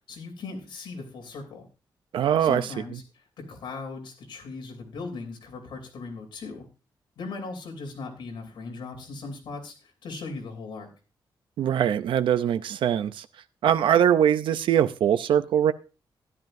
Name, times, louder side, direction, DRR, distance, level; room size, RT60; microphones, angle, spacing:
voice 1, 0.1-1.7 2.4-6.6 7.2-10.9, left 3 dB, 75° left, 3.2 m, -38 dB
voice 2, 2.1-2.6 11.6-13.3 13.6-15.7, right 9 dB, 85° right, 0.5 m, -22 dB
13.5 x 11.0 x 2.6 m
wide cardioid pair, 170°, 8 cm